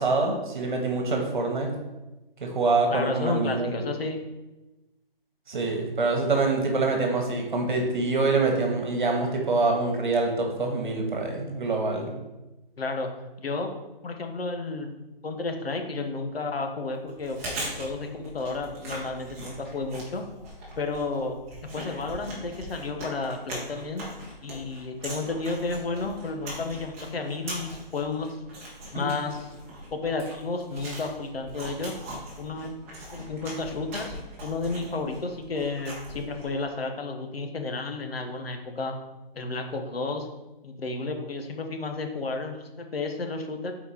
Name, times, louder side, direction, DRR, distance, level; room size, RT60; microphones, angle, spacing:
voice 1, 0.0-1.7 2.4-3.7 5.5-12.1 28.9-29.0, right 3 dB, 55° right, 2 dB, 1.5 m, -25 dB
voice 2, 2.9-4.3 12.8-13.1 13.4-13.7 14.0-14.9 15.2-17.4 17.8-20.3 20.8-21.4 21.7-24.1 24.4-28.3 28.9-29.5 29.9-31.9 32.4-32.8 33.1-39.0 39.3-40.3 40.6-43.7, left 3 dB, 80° left, 5 dB, 1.2 m, -32 dB
Chewing mastication, 17.1-36.6, right 1 dB, 15° right, 1.1 m, -40 dB
5.7 x 4.5 x 4.3 m, 1.0 s
hypercardioid pair, 165°, 30 cm